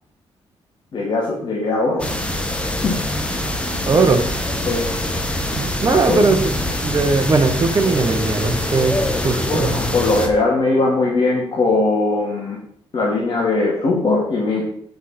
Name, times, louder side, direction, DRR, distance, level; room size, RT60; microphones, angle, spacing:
voice 1, 0.9-2.0 2.8-3.0 3.9-4.1 4.6-4.8 5.9-6.3 9.5-12.6 12.9-14.6, left 3 dB, 45° left, -4 dB, 2.4 m, -20 dB
sound 1, 2.0-10.3, left 1 dB, 10° left, 1.2 m, -24 dB
voice 2, 3.9-4.2 5.6-6.4 6.7-9.0 9.2-9.7, right 4 dB, 35° right, 6 dB, 1.1 m, -18 dB
8.0 x 6.6 x 4.3 m, 0.65 s
cardioid pair, 120°, 11 cm